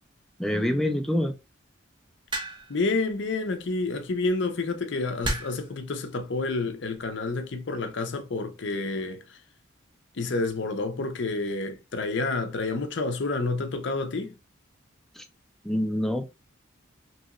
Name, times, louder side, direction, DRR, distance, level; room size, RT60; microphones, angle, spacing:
voice 1, 0.4-1.3 15.2-15.3 15.6-16.4, left 1 dB, ahead, 0.4 m, -26 dB
sound 1, 2.3-2.8 4.0-4.3 5.2-5.7 6.7-7.0, right 1 dB, 25° right, 0.7 m, -32 dB
voice 2, 2.7-9.2 10.2-14.3, left 3 dB, 60° left, 0.6 m, -29 dB
3.0 x 2.9 x 2.4 m
head